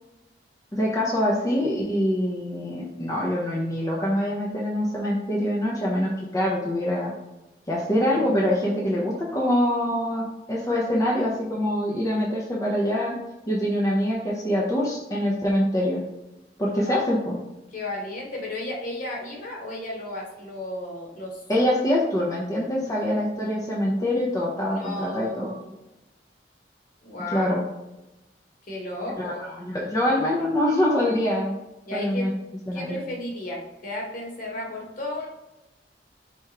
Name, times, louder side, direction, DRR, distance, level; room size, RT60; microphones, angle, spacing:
voice 1, 0.7-7.1 7.7-13.2 13.5-16.0 16.6-17.3 21.5-25.5 27.3-27.6 29.2-31.6 31.9-32.3 32.7-33.0, left 1 dB, 20° left, -4 dB, 0.6 m, -24 dB
voice 2, 16.7-17.0 17.7-21.4 24.7-25.8 27.0-27.6 28.7-29.4 31.9-32.3 32.7-35.3, left 1 dB, 50° left, -2 dB, 1.3 m, -34 dB
4.6 x 3.5 x 2.9 m, 0.98 s
head